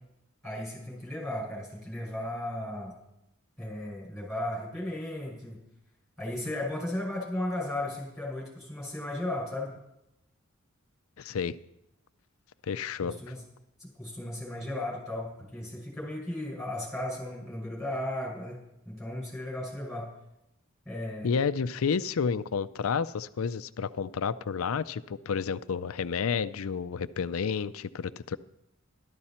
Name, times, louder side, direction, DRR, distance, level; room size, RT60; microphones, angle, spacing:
voice 1, 0.4-2.9 3.6-5.6 6.2-9.7 13.0-13.4 13.8-18.6 18.9-20.1 20.9-21.3, left 1 dB, ahead, -5 dB, 5.8 m, -35 dB
voice 2, 11.2-11.6 12.7-13.2 21.2-28.4, left 6 dB, 80° left, 15 dB, 0.5 m, -30 dB
12.5 x 12.0 x 4.3 m, 0.87 s
head